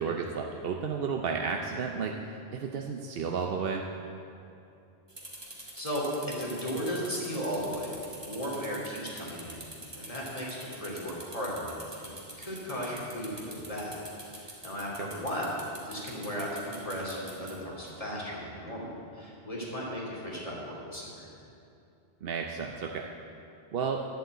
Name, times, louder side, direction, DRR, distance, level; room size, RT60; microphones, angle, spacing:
voice 1, 0.0-3.8 15.0-15.1 22.2-23.1 23.7-24.0, right 5 dB, 65° right, 2 dB, 0.9 m, -32 dB
sound 1, 5.1-17.5, right 1 dB, 25° right, 1.9 m, -45 dB
voice 2, 5.7-9.6 9.9-14.0 14.4-21.3, equal, 35° left, -5 dB, 2.8 m, -36 dB
11.0 x 7.8 x 8.0 m, 2.7 s
omnidirectional pair, 1.1 m